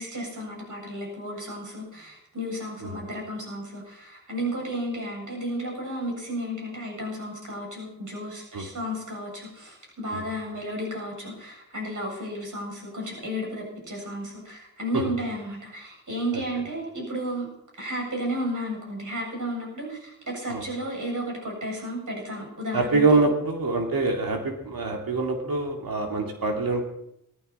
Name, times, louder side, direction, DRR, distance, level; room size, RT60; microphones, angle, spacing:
voice 1, 0.0-17.5 17.8-23.3, equal, 60° right, -2 dB, 7.6 m, -33 dB
voice 2, 22.7-26.8, right 3 dB, 85° right, 2 dB, 2.5 m, -25 dB
17.0 x 14.0 x 4.3 m, 0.79 s
cardioid pair, 40°, 34 cm